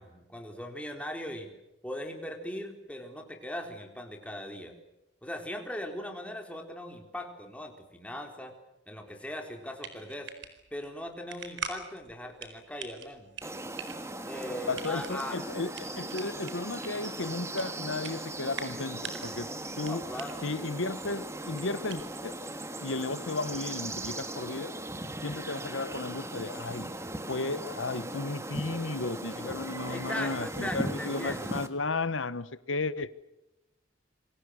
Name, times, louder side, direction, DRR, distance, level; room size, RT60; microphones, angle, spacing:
voice 1, 0.0-1.5 1.8-4.7 5.2-8.5 8.9-10.3 10.7-13.3 14.2-15.5 19.8-20.5 29.9-31.5, left 1 dB, 5° left, 3.9 m, -39 dB
sound 1, 9.5-22.5, right 5 dB, 75° right, 4.4 m, -45 dB
sound 2, 13.4-31.7, right 1 dB, 15° right, 1.9 m, -38 dB
voice 2, 14.7-19.5 19.8-20.0 20.4-22.3 22.8-24.8 25.2-26.9 27.3-33.1, left 3 dB, 90° left, 1.2 m, -34 dB
28.5 x 24.0 x 6.6 m
head